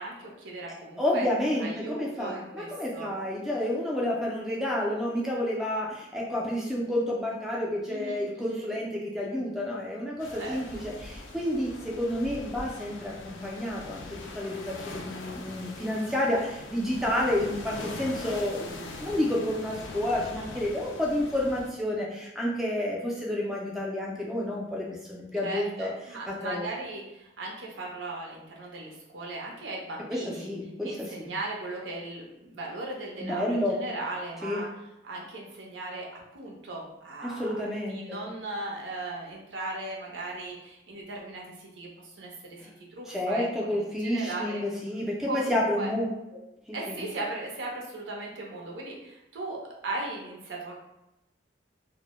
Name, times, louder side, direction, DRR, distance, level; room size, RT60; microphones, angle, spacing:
voice 1, 0.0-1.3 1.6-3.1 7.9-8.7 10.4-10.8 25.4-30.5 30.8-34.7 35.0-37.6 37.9-44.6 45.3-45.9 46.7-49.6 49.8-50.9, right 2 dB, 90° right, -2 dB, 0.6 m, -38 dB
voice 2, 1.0-14.0 14.3-25.9 26.3-26.7 30.1-31.3 33.2-33.8 34.4-34.6 37.2-38.2 42.6-42.7 43.1-46.1 46.3-46.4 46.7-47.0, left 1 dB, ahead, -4 dB, 0.3 m, -30 dB
sound 1, 10.2-21.7, left 3 dB, 90° left, 0.4 m, -42 dB
2.1 x 2.0 x 2.9 m, 0.92 s
head